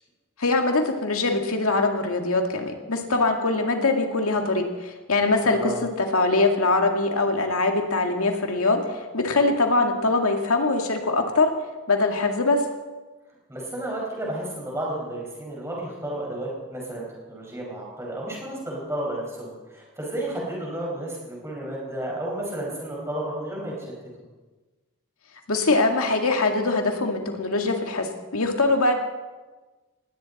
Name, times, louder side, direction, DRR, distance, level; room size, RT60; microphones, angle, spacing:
voice 1, 0.4-11.5 11.9-12.6 25.5-28.1 28.3-28.9, left 3 dB, 85° left, 3 dB, 2.1 m, -22 dB
voice 2, 5.4-5.8 13.5-23.9, right 1 dB, 15° right, -3 dB, 5.3 m, -32 dB
19.5 x 16.5 x 4.2 m, 1.3 s
head